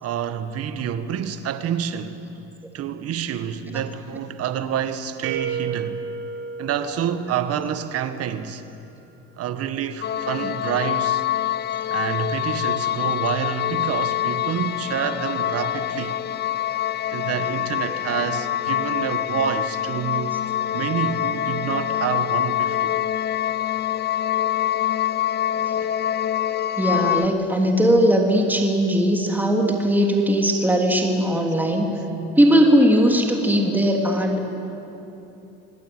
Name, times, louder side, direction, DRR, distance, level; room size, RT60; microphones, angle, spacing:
voice 1, 0.0-2.2 2.7-6.0 6.6-8.6 9.4-11.2 11.9-16.2 17.1-20.4 20.7-23.0 31.8-31.9, right 9 dB, 50° right, 1.7 m, -28 dB
sound 1, 5.2-8.1, right 6 dB, 80° right, 3.7 m, -32 dB
sound 2, 10.0-27.3, left 12 dB, 35° left, 0.6 m, -25 dB
voice 2, 26.8-31.9 32.4-34.4, equal, 5° right, 3.1 m, -19 dB
26.5 x 18.5 x 9.3 m
supercardioid pair, 110°, 30 cm